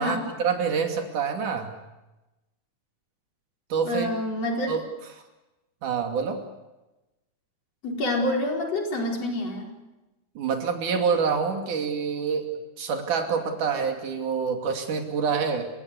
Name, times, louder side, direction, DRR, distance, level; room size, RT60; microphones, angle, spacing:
voice 1, 0.0-1.7 3.7-4.1 4.7-4.8 5.8-6.4 10.4-15.7, right 6 dB, 80° right, 5 dB, 4.2 m, -27 dB
voice 2, 3.8-4.7 7.8-9.7, left 1 dB, 55° left, 1 dB, 5.9 m, -27 dB
29.5 x 16.5 x 9.8 m, 1.0 s
omnidirectional pair, 3.5 m